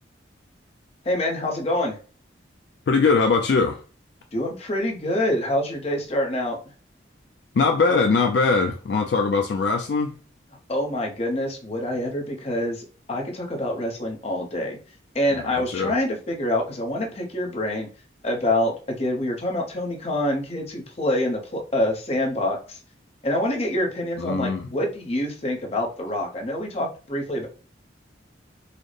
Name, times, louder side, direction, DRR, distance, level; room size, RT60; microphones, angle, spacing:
voice 1, 1.0-2.0 4.3-6.6 10.7-14.8 15.1-17.9 18.2-22.8 23.2-27.5, left 1 dB, 35° left, 0.7 m, -26 dB
voice 2, 2.9-3.8 7.5-10.1 15.3-15.9 24.2-24.7, left 4 dB, 60° left, 0.3 m, -21 dB
3.9 x 2.0 x 3.2 m
head